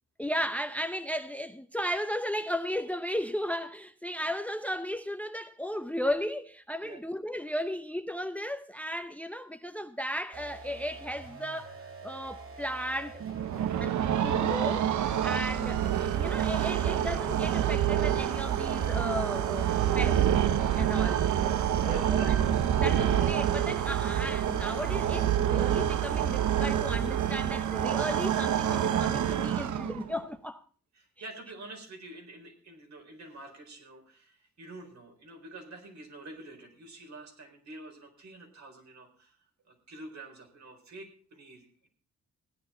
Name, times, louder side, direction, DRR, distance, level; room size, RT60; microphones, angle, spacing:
voice 1, 0.2-13.2 13.8-14.0 14.2-20.3 20.7-21.2 21.8-22.4 22.8-30.6, equal, 5° left, 0.7 m, -35 dB
sound 1, 10.3-25.8, right 4 dB, 50° right, 2.2 m, -46 dB
sound 2, 13.2-30.2, right 10 dB, 85° right, 0.8 m, -27 dB
voice 2, 13.6-14.0 20.9-21.2 21.5-22.3 30.9-39.4 39.6-41.9, right 2 dB, 65° right, 4.4 m, -48 dB
16.0 x 10.0 x 4.3 m
cardioid pair, 105°, 29 cm